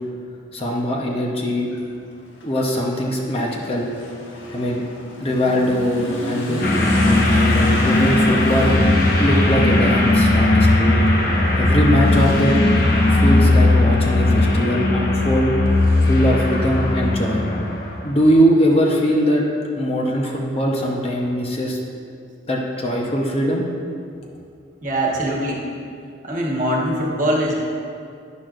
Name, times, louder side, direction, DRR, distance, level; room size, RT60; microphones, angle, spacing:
voice 1, 0.5-1.7 2.4-3.9 4.5-4.8 5.2-8.8 9.2-11.0 11.6-12.6 13.1-15.6 16.0-17.4 18.0-19.4 19.8-21.8 22.5-23.6, equal, 30° left, -1 dB, 0.9 m, -21 dB
Motorcycle / Accelerating revving vroom, 1.6-13.9, left 1 dB, 75° left, 1.4 m, -33 dB
sound 1, 6.6-18.0, left 2 dB, 50° left, 1.1 m, -17 dB
voice 2, 24.8-25.7 26.2-27.5, right 1 dB, 40° right, -2 dB, 1.4 m, -22 dB
11.0 x 10.5 x 2.5 m, 2.4 s
head